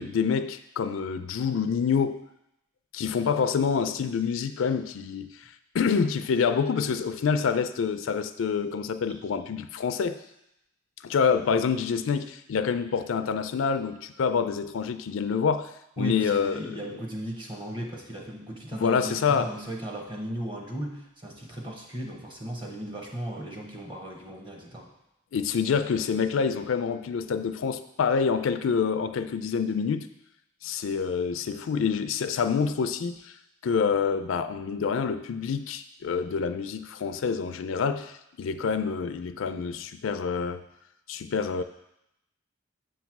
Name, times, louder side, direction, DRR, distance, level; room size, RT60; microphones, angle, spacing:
voice 1, 0.0-2.2 2.9-5.3 5.7-10.2 11.0-15.7 16.0-16.6 18.7-19.5 25.3-30.1 30.6-33.3 33.6-40.6 41.1-41.6, left 6 dB, 80° left, 11 dB, 0.4 m, -27 dB
voice 2, 16.0-24.9, equal, 25° right, 0 dB, 1.0 m, -36 dB
7.7 x 3.1 x 5.9 m, 0.83 s
head